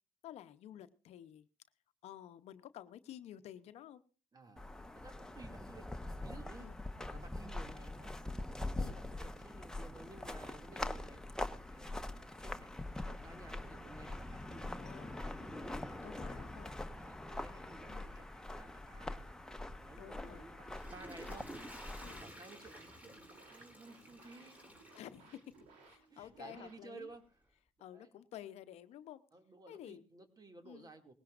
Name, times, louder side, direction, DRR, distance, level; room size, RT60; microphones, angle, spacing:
voice 1, 0.2-1.5 2.0-4.0 6.6-6.8 8.7-9.0 14.5-15.2 16.0-16.7 17.9-18.1 20.0-20.5 22.0-22.2 24.9-25.6 25.8-27.1 27.8-29.2 29.7-30.0 30.6-30.9, left 11 dB, 70° left, 12 dB, 0.8 m, -52 dB
voice 2, 4.3-4.6 4.9-5.9 6.2-6.7 7.1-8.2 8.8-16.5 16.9-18.3 18.5-19.2 19.8-21.5 21.8-24.6 24.9-25.0 26.1-27.2 27.8-28.2 29.3-31.1, right 3 dB, 35° right, 6 dB, 2.4 m, -56 dB
sound 1, 4.6-22.2, left 1 dB, 5° left, 1.2 m, -43 dB
Water / Toilet flush, 20.5-25.8 26.3-26.4, equal, 15° right, 3.4 m, -53 dB
sound 2, 22.2-27.2, right 3 dB, 80° right, 3.3 m, -63 dB
19.5 x 17.0 x 2.5 m, 0.36 s
supercardioid pair, 60°, 11 cm